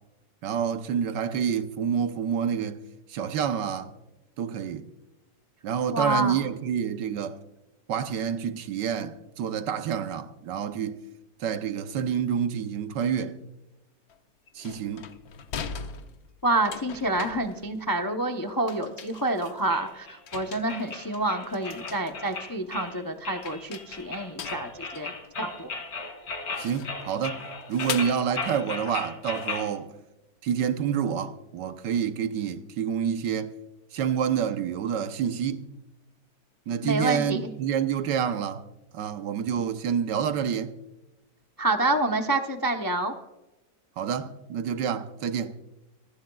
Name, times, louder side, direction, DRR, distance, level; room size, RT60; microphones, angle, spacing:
voice 1, 0.4-2.8 3.1-3.9 4.4-4.9 5.6-7.4 7.9-11.0 11.4-13.4 14.5-15.1 26.6-29.9 30.4-33.5 33.9-35.7 36.7-38.6 38.9-40.7 44.0-45.6, right 8 dB, 80° right, 1.5 m, -28 dB
voice 2, 5.9-6.5 16.4-25.1 25.4-25.7 36.8-37.5 41.6-43.1, right 2 dB, 25° left, 0.4 m, -28 dB
sound 1, 14.1-14.2 14.5-18.1 18.4-19.9 20.3-22.4 22.7-23.2 23.4-25.8 26.5-27.1 27.7-28.3 29.3-29.6, left 7 dB, 65° left, 1.3 m, -41 dB
sound 2, 19.7-29.7, left 4 dB, 90° left, 3.3 m, -36 dB
27.0 x 11.5 x 2.3 m
omnidirectional pair, 1.8 m